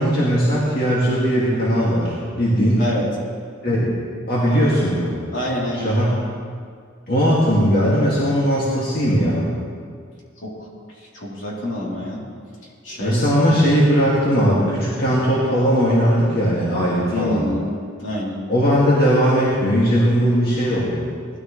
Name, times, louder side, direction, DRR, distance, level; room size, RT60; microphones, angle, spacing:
voice 1, 0.0-2.8 3.6-3.9 4.3-5.1 5.7-6.1 7.1-9.5 13.0-17.4 18.5-21.1, equal, 50° left, -7 dB, 2.3 m, -18 dB
voice 2, 2.8-3.1 5.3-5.9 10.4-12.2 12.8-13.7 17.1-17.7 18.0-18.4, left 1 dB, 70° left, -5 dB, 3.5 m, -27 dB
19.0 x 13.5 x 3.3 m, 2.1 s
head